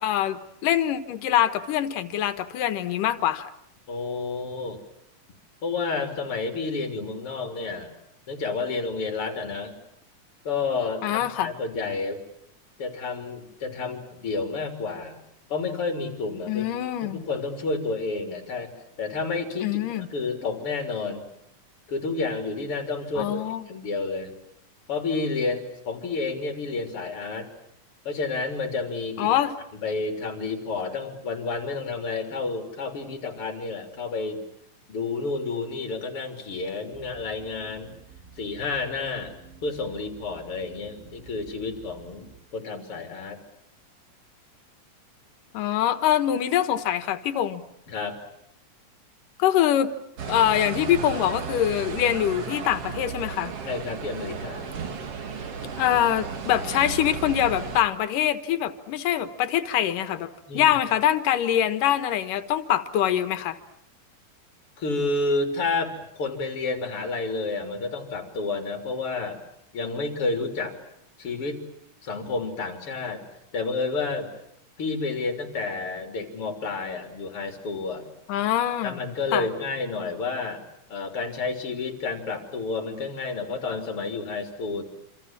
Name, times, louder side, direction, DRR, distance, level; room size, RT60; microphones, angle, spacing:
voice 1, 0.0-3.5 11.0-11.5 16.5-17.2 19.6-20.1 23.2-23.7 29.2-29.5 45.5-47.6 49.4-49.9 50.3-53.5 55.8-60.3 60.5-63.6 78.3-79.0 79.3-79.5, left 11 dB, 90° left, 11 dB, 2.9 m, -24 dB
voice 2, 3.9-4.8 5.6-7.9 8.3-9.7 10.4-12.2 12.8-15.2 15.5-16.6 17.0-18.7 19.0-19.7 20.1-21.3 21.9-24.3 24.9-27.5 28.1-29.3 29.8-34.4 34.9-37.9 38.4-39.3 39.6-42.3 42.5-43.4 47.9-48.2 53.6-54.8 60.5-60.8 64.8-69.4 69.7-70.8 71.2-71.6 72.0-73.2 73.5-74.3 74.8-78.0 78.8-80.6 80.9-84.8, left 3 dB, 45° left, 5 dB, 4.1 m, -30 dB
sound 1, 36.9-42.4, right 5 dB, 20° right, 2.9 m, -50 dB
sound 2, 50.2-57.8, right 6 dB, 50° right, 2.8 m, -34 dB
27.0 x 26.5 x 7.4 m, 0.74 s
omnidirectional pair, 3.7 m